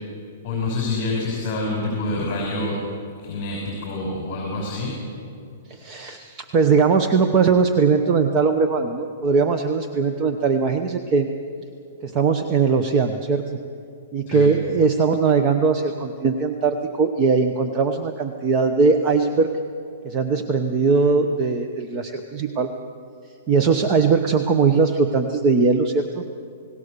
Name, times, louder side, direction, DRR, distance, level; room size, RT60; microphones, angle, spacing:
voice 1, 0.4-2.7 3.2-4.9 14.3-14.5, left 2 dB, 30° left, -2 dB, 5.8 m, -27 dB
voice 2, 5.7-11.3 12.0-13.6 14.1-19.5 20.0-22.7 23.5-26.2, right 4 dB, 20° right, 6 dB, 0.9 m, -20 dB
29.0 x 18.5 x 6.9 m, 2.5 s
hypercardioid pair, 170°, 0 cm